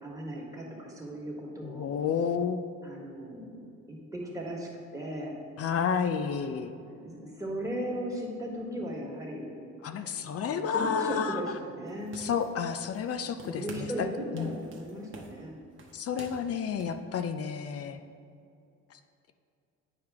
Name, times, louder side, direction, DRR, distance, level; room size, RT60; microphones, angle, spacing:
voice 1, 0.0-1.9 2.8-5.4 6.8-9.5 10.5-12.2 13.4-15.5, equal, 10° right, -3 dB, 1.7 m, -37 dB
voice 2, 1.6-2.6 5.6-6.7 9.8-11.4 12.1-13.9 14.3-14.5 15.9-18.0, left 7 dB, 50° left, 8 dB, 0.5 m, -31 dB
sound 1, 11.8-13.1 13.4-14.0 14.4-17.0, right 3 dB, 40° right, 1.0 m, -49 dB
9.6 x 4.8 x 3.5 m, 2.5 s
cardioid pair, 90°, 30 cm